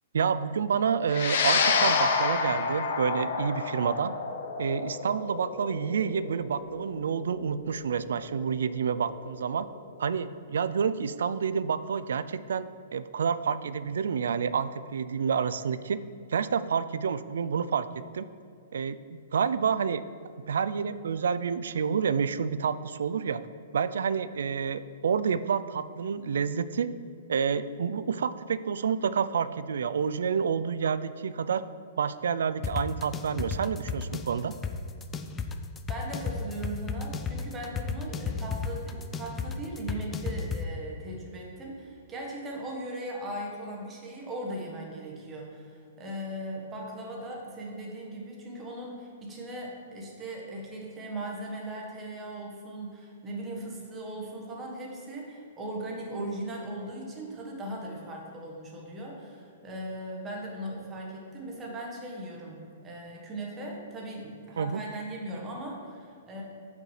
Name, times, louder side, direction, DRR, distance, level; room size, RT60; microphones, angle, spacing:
voice 1, 0.1-4.1 4.6-9.7 10.0-16.0 16.3-17.9 18.1-18.2 18.7-20.0 20.5-23.4 23.7-26.9 27.3-31.6 32.0-34.5 64.6-64.8, right 6 dB, 80° right, 15 dB, 0.3 m, -29 dB
sound 1, 1.1-9.7, left 5 dB, 65° left, 0.9 m, -29 dB
sound 2, 32.6-40.6, left 5 dB, 15° left, 0.3 m, -33 dB
voice 2, 35.9-66.4, right 1 dB, 15° right, -2 dB, 1.3 m, -38 dB
8.4 x 5.3 x 3.2 m, 2.4 s
hypercardioid pair, 160°, 0 cm